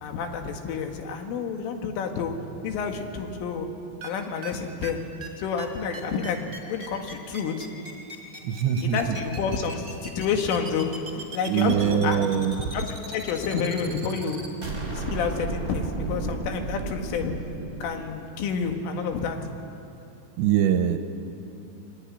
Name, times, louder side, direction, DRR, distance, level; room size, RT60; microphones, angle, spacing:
voice 1, 0.0-2.3 2.6-3.7 4.0-5.0 5.4-6.4 6.7-7.7 8.9-10.9 11.3-12.2 12.7-14.5 14.9-17.3 17.8-19.4, left 6 dB, 85° left, 4 dB, 4.5 m, -29 dB
sound 1, 4.0-4.1 4.4-4.5 4.8-4.9 5.2-5.3 5.6-5.7 5.9-18.0, right 3 dB, 15° right, 3.9 m, -35 dB
voice 2, 8.4-9.2 11.5-12.7 20.4-21.0, right 9 dB, 75° right, 7 dB, 3.0 m, -23 dB
25.5 x 22.5 x 9.8 m, 2.7 s
omnidirectional pair, 5.6 m